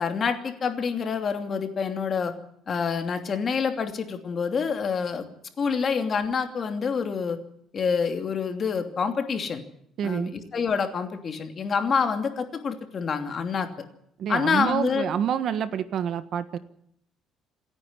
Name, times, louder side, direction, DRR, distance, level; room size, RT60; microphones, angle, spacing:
voice 1, 0.0-2.3 2.7-5.2 5.6-7.4 7.7-9.6 10.0-13.8 14.3-15.1, left 5 dB, 35° left, 6 dB, 2.8 m, -27 dB
voice 2, 10.0-10.3 14.2-16.6, right 8 dB, 50° right, 12 dB, 1.4 m, -27 dB
28.0 x 10.5 x 9.8 m, 0.71 s
cardioid pair, 155°, 0 cm